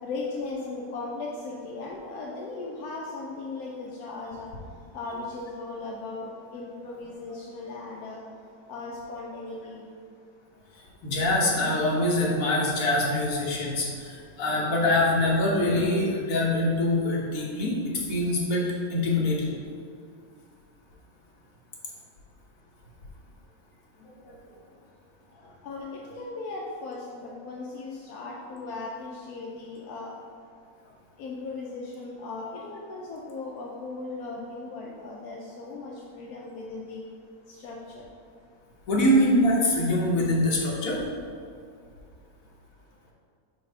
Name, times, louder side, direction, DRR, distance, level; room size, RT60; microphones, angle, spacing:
voice 1, 0.0-4.5 4.9-8.2 8.7-9.8 25.6-30.2 31.2-37.0 37.5-38.0, left 3 dB, 85° left, -3 dB, 1.2 m, -37 dB
voice 2, 11.0-18.6 18.9-19.5 24.0-24.4 38.9-41.0, left 1 dB, 65° left, -3 dB, 1.5 m, -24 dB
4.5 x 4.2 x 5.4 m, 2.3 s
omnidirectional pair, 1.6 m